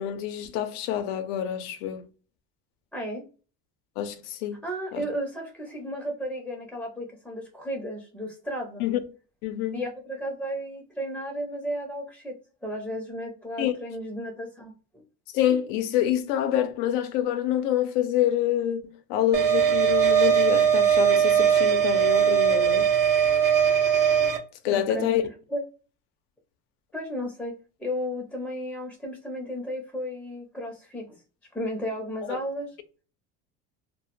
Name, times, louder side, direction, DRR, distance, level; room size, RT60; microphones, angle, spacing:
voice 1, 0.0-2.0 4.0-4.6 4.9-5.1 8.8-9.0 9.4-9.8 13.6-13.8 15.3-22.9 24.6-25.2 32.2-32.4, left 11 dB, 85° left, 0.5 m, -27 dB
voice 2, 2.9-3.3 4.6-8.8 9.7-15.0 24.7-25.1 25.5-25.6 26.9-27.5 27.8-31.2 31.5-32.7, equal, ahead, 0.5 m, -34 dB
sound 1, 19.3-24.4, right 8 dB, 65° right, 0.7 m, -20 dB
2.1 x 2.0 x 2.9 m
cardioid pair, 115°, 36 cm